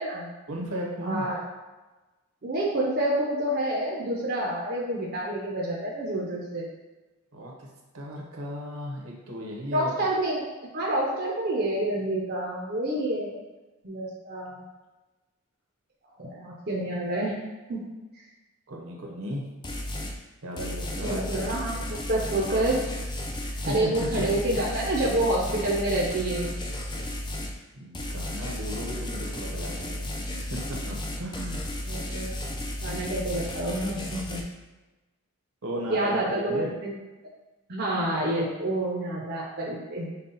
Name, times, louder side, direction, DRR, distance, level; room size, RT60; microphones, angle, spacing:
voice 1, 0.5-1.3 7.3-7.7 7.9-9.9 18.7-19.4 20.4-21.2 23.7-24.3 27.7-30.2 30.5-31.6 35.6-36.7, equal, 75° right, -1 dB, 1.0 m, -35 dB
voice 2, 1.0-1.4 2.4-6.7 9.7-13.4 13.8-14.6 16.2-17.4 17.7-17.8 21.0-21.8 22.1-22.8 23.4-26.5 31.9-32.3 32.8-34.4 35.9-36.9 37.7-40.1, right 1 dB, 45° right, -4 dB, 0.6 m, -28 dB
sound 1, 19.6-20.2 20.6-27.6 27.9-34.4, left 1 dB, 20° left, 0.4 m, -34 dB
5.5 x 2.3 x 4.0 m, 1.2 s
head